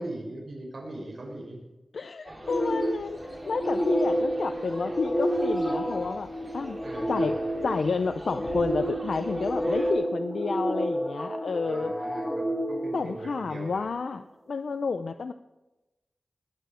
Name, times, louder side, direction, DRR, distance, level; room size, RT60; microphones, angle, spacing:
voice 1, 0.0-1.6 6.8-7.7 11.6-13.9, right 1 dB, 65° right, -1 dB, 6.0 m, -40 dB
voice 2, 1.9-6.3 6.5-6.8 7.1-7.3 7.6-11.9 12.9-15.3, left 4 dB, 80° left, 9 dB, 0.6 m, -30 dB
sound 1, 2.2-9.9, right 1 dB, 35° right, 4.3 m, -44 dB
sound 2, 2.4-13.8, equal, 15° left, 2.2 m, -30 dB
21.0 x 9.1 x 5.1 m, 1.0 s
wide cardioid pair, 105°, 0 cm